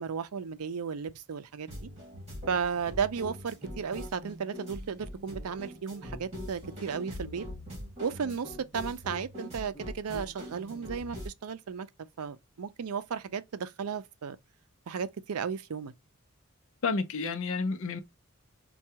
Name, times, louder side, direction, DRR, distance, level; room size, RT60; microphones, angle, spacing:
voice 1, 0.0-1.9 2.5-7.5 8.0-11.9 12.2-14.4 14.9-15.9, right 6 dB, 85° right, 0.5 m, -34 dB
sound 1, 1.7-11.3, left 1 dB, 30° right, 1.9 m, -42 dB
voice 2, 16.8-18.0, left 4 dB, 65° left, 0.6 m, -30 dB
4.5 x 2.3 x 2.8 m
head